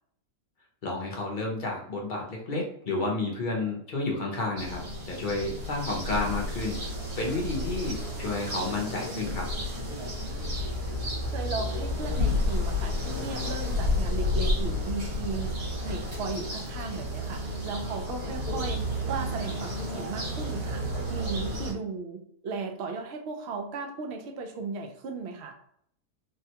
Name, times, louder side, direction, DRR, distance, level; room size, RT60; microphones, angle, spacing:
voice 1, 0.8-6.8 7.2-9.5, left 2 dB, 50° left, -1 dB, 0.6 m, -31 dB
sound 1, 4.6-21.7, left 1 dB, 80° right, 1.7 m, -31 dB
voice 2, 10.2-10.6 11.3-25.5, right 4 dB, 65° right, 4 dB, 0.7 m, -36 dB
3.4 x 2.2 x 2.8 m, 0.67 s
omnidirectional pair, 1.6 m